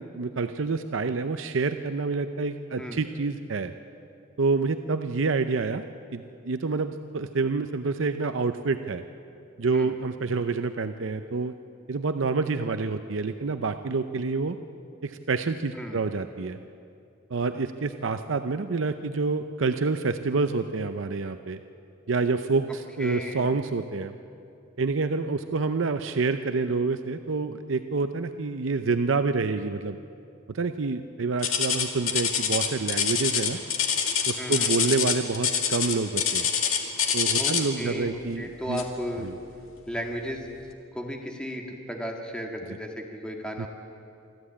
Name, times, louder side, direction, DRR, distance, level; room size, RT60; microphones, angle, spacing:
voice 1, 0.0-3.7 4.4-5.8 6.1-9.0 9.6-11.5 11.9-14.6 15.0-16.6 17.3-21.6 22.1-24.2 24.8-30.0 30.5-33.6 34.3-36.5 37.1-38.8 39.2-39.3 43.6-43.7, right 4 dB, 70° right, 9 dB, 0.6 m, -27 dB
voice 2, 23.0-23.6 34.4-35.0 37.4-39.3 39.9-40.5 40.9-43.7, equal, 5° left, 1 dB, 2.0 m, -35 dB
sound 1, 31.4-37.8 38.8-39.0 39.6-39.7 40.4-40.5, left 7 dB, 85° left, 2.1 m, -25 dB
24.5 x 14.0 x 8.6 m, 2.5 s
head